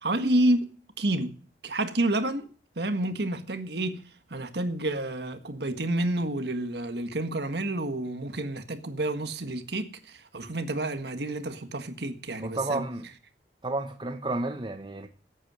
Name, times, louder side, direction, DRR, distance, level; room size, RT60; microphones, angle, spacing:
voice 1, 0.0-0.7 1.0-1.3 1.6-2.5 2.7-4.0 4.3-12.8, right 1 dB, 70° right, 1.6 m, -29 dB
voice 2, 12.4-13.0 13.6-15.1, right 2 dB, 25° right, 1.0 m, -31 dB
13.0 x 8.8 x 6.3 m
head